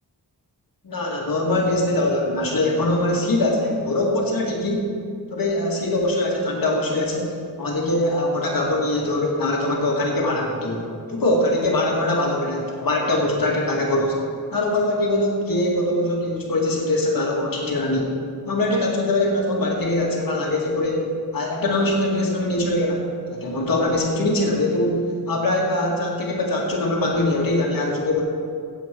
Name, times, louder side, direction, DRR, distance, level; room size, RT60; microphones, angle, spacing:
voice 1, 0.8-4.9 5.3-10.8 11.1-14.2 14.5-18.1 18.4-21.1 21.3-23.1 23.3-28.2, left 1 dB, 60° left, -2 dB, 2.2 m, -22 dB
16.5 x 8.0 x 4.5 m, 2.3 s
wide cardioid pair, 170°, 39 cm